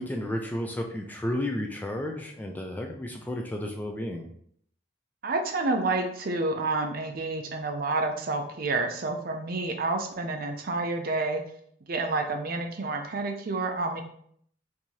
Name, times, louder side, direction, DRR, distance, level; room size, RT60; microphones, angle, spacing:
voice 1, 0.0-4.3, left 1 dB, 10° left, 2 dB, 0.3 m, -32 dB
voice 2, 5.2-11.4 11.9-14.0, right 3 dB, 50° right, 5 dB, 0.5 m, -29 dB
4.5 x 2.7 x 2.8 m, 0.65 s
head